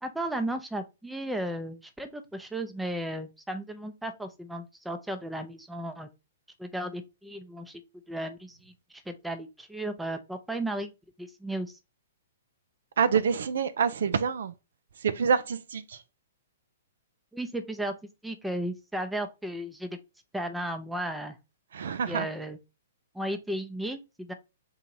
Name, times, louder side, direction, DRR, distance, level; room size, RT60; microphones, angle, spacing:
voice 1, 0.0-6.1 6.6-7.8 8.1-10.9 11.2-11.7 17.3-17.9 18.2-20.0 20.3-21.4 22.1-22.6 23.1-24.3, right 1 dB, 5° right, 0.6 m, -34 dB
voice 2, 13.0-14.5 15.0-15.8 21.7-22.3, right 6 dB, 60° right, 0.4 m, -26 dB
3.8 x 2.8 x 4.4 m
figure-of-eight pair, 115°, 0 cm